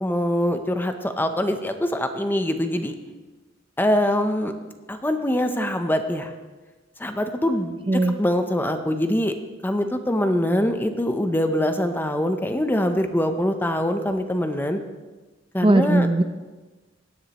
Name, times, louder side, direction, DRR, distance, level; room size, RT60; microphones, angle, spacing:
voice 1, 0.0-2.9 3.8-4.5 4.9-6.3 7.0-9.3 9.6-14.8 15.5-16.1, left 1 dB, 10° left, 7 dB, 0.6 m, -23 dB
voice 2, 15.6-16.2, right 2 dB, 25° right, 8 dB, 0.5 m, -18 dB
17.0 x 10.0 x 3.0 m, 1.2 s
head